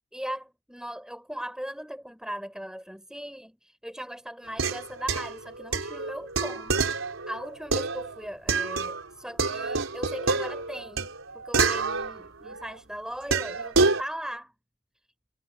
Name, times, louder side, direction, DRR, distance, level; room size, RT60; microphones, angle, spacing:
voice 1, 0.1-14.5, equal, 5° right, 5.6 m, -39 dB
sound 1, 4.5-9.1 9.4-12.7 13.3-14.0, right 4 dB, 90° right, 4.5 m, -28 dB
head